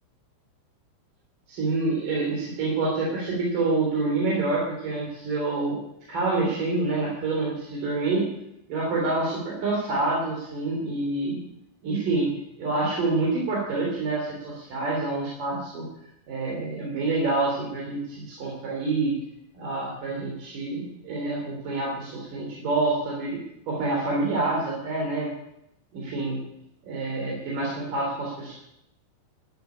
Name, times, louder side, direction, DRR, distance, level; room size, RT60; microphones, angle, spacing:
voice 1, 1.5-5.8 6.1-8.3 8.7-11.4 11.8-12.3 12.6-15.8 16.3-19.2 19.5-23.4 23.7-25.3 25.9-26.4 26.8-28.5, right 3 dB, 45° right, -4 dB, 4.8 m, -27 dB
14.0 x 9.0 x 9.8 m, 0.83 s
omnidirectional pair, 5.5 m